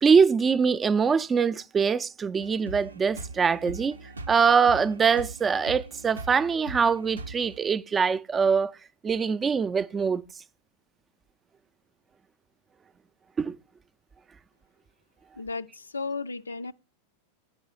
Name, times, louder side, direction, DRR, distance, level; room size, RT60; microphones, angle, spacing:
voice 1, 0.0-4.0 4.3-8.8 9.0-10.2 13.4-13.6, right 6 dB, 20° right, 0.4 m, -23 dB
sound 1, 2.4-7.6, right 3 dB, 75° right, 0.6 m, -41 dB
voice 2, 15.4-16.7, left 4 dB, 75° left, 0.4 m, -34 dB
8.9 x 5.3 x 5.7 m
figure-of-eight pair, 90°, 0 cm